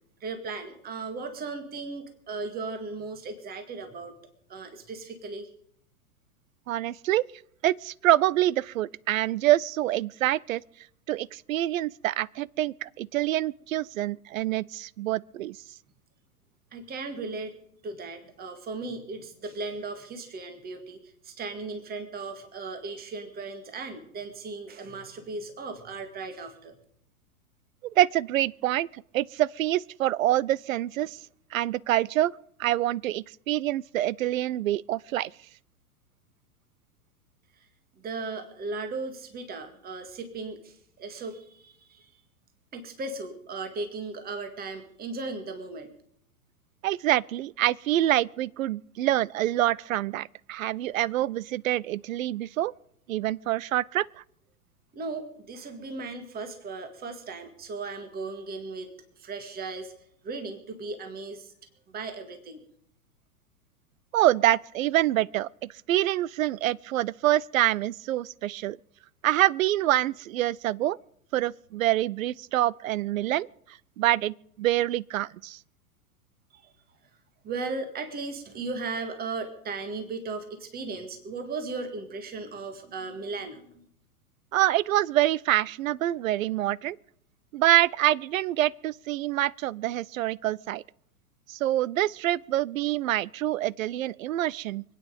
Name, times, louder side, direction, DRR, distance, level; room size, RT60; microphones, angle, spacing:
voice 1, 0.2-4.1 4.5-5.5 16.7-17.5 17.8-26.8 38.0-42.1 42.7-45.9 54.9-59.9 60.2-61.5 61.9-62.6 76.5-76.7 77.4-83.7, right 3 dB, 20° right, 2.0 m, -37 dB
voice 2, 6.7-7.3 7.6-10.6 11.1-15.6 27.9-31.2 31.5-32.3 32.6-35.3 46.8-52.7 53.1-54.1 64.1-68.8 69.2-71.0 71.3-73.5 74.0-75.6 84.5-87.0 87.5-90.8 91.5-94.8, right 14 dB, 60° right, 0.6 m, -26 dB
25.0 x 9.4 x 5.2 m
figure-of-eight pair, 105°, 45 cm